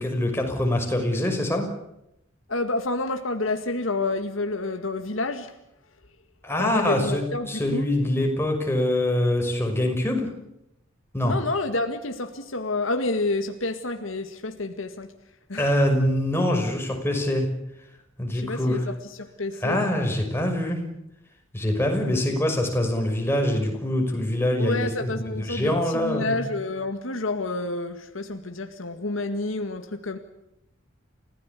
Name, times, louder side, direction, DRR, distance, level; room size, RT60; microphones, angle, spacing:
voice 1, 0.0-1.7 6.4-10.3 11.1-11.4 15.6-17.5 18.2-18.8 19.6-20.8 21.5-26.3, left 1 dB, 10° left, 2 dB, 5.8 m, -24 dB
voice 2, 2.5-5.5 6.6-7.9 11.2-15.1 15.5-15.7 18.3-19.8 22.0-22.2 24.6-30.2, left 2 dB, 90° left, 6 dB, 2.0 m, -29 dB
29.5 x 16.5 x 8.4 m, 0.84 s
head